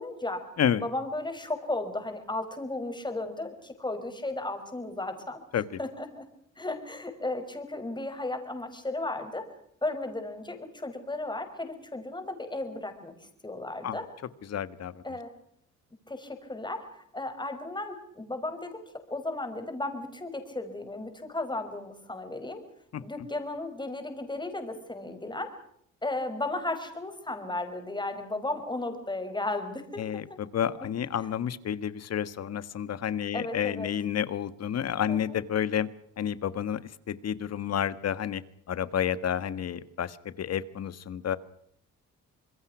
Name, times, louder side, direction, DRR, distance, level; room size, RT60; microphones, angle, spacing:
voice 1, 0.0-0.4 0.8-5.4 5.8-6.2 6.6-9.4 9.8-14.1 15.0-15.3 16.1-18.8 19.1-22.6 23.0-25.5 26.0-30.0 31.2-31.3 33.3-33.9 35.1-35.4, left 2 dB, 15° left, 7 dB, 5.4 m, -35 dB
voice 2, 14.5-15.0 22.9-23.0 30.0-35.9 36.2-38.4 38.7-41.4, left 9 dB, 55° left, 15 dB, 1.5 m, -30 dB
26.5 x 22.0 x 6.1 m, 0.71 s
cardioid pair, 90°, 30 cm